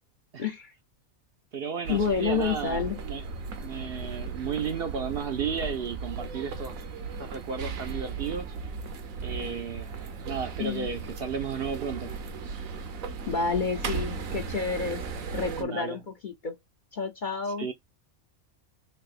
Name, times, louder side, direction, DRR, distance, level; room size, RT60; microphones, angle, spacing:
voice 1, 0.4-0.7 1.9-3.0 10.6-10.9 13.3-15.0 15.3-16.6 16.9-17.7, left 5 dB, 50° left, 0.6 m, -29 dB
voice 2, 1.5-3.2 3.6-6.8 7.2-8.6 9.2-9.9 10.3-12.1 15.6-16.0 17.6-17.7, right 6 dB, 60° right, 0.7 m, -33 dB
Content warning, 1.8-15.6, right 5 dB, 90° right, 1.3 m, -36 dB
3.7 x 3.3 x 2.4 m
omnidirectional pair, 1.4 m